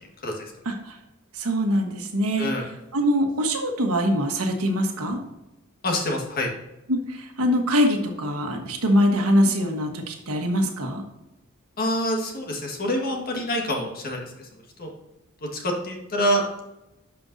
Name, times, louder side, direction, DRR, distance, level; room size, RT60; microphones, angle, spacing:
voice 1, 1.3-5.2 6.9-11.0, equal, 90° right, 4 dB, 1.3 m, -23 dB
voice 2, 5.8-6.5 11.8-14.2 14.8-14.9 15.5-16.6, equal, 45° left, 1 dB, 1.6 m, -26 dB
11.5 x 5.3 x 2.6 m, 0.93 s
head